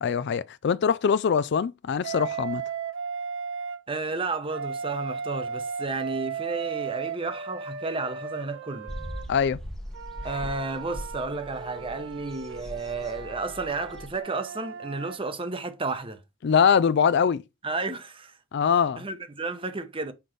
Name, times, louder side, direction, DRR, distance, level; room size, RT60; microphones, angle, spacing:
voice 1, 0.0-2.6 9.3-9.6 16.4-17.4 18.5-19.0, left 7 dB, 55° left, 0.4 m, -23 dB
Wind instrument woodwind instrument, 2.0-3.8 4.5-9.3 9.9-15.2, right 6 dB, 65° right, 0.5 m, -36 dB
voice 2, 3.9-8.9 10.2-16.2 17.6-18.3 19.0-20.1, right 3 dB, 25° right, 0.8 m, -32 dB
sound 1, 8.9-14.2, equal, ahead, 0.8 m, -40 dB
5.9 x 5.3 x 3.1 m
head